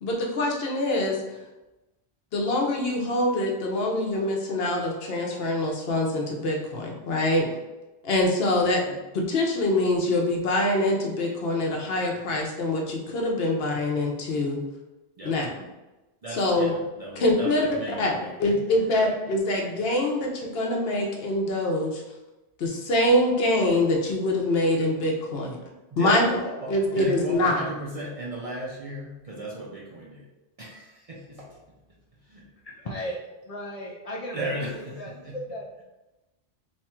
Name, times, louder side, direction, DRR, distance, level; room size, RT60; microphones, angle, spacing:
voice 1, 0.0-1.2 2.3-7.5 8.0-14.6 15.2-15.5 16.3-16.7 17.2-17.7 18.0-18.1 18.4-22.0 22.6-25.6 26.0-26.2 26.7-27.6, left 1 dB, 65° left, 0 dB, 0.9 m, -24 dB
voice 2, 16.2-18.6 25.9-30.3 30.6-31.6 32.3-32.4 34.3-35.4, right 1 dB, 40° right, -4 dB, 0.5 m, -36 dB
voice 3, 32.6-33.2 33.4-34.4 34.7-35.8, equal, 50° left, -4 dB, 0.4 m, -36 dB
2.9 x 2.3 x 4.2 m, 1.0 s
omnidirectional pair, 1.1 m